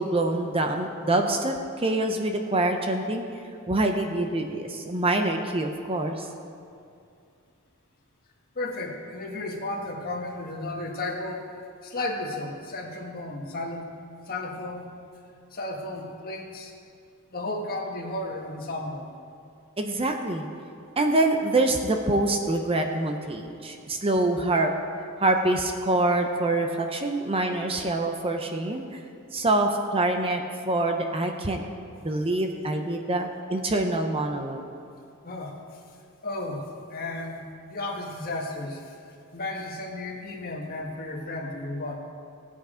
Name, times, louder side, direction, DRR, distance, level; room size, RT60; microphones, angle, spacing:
voice 1, 0.0-3.2 3.7-6.3 19.8-20.5 21.0-24.7 25.2-28.9 29.3-31.6 32.0-34.6, right 2 dB, 25° right, 4 dB, 0.7 m, -25 dB
voice 2, 1.0-1.4 8.5-11.4 11.8-13.9 14.3-14.9 15.5-16.7 17.3-19.0 35.2-35.6 36.2-36.6 36.9-38.9 39.3-42.0, left 2 dB, 45° left, -2 dB, 1.6 m, -33 dB
16.5 x 8.3 x 5.0 m, 2.4 s
head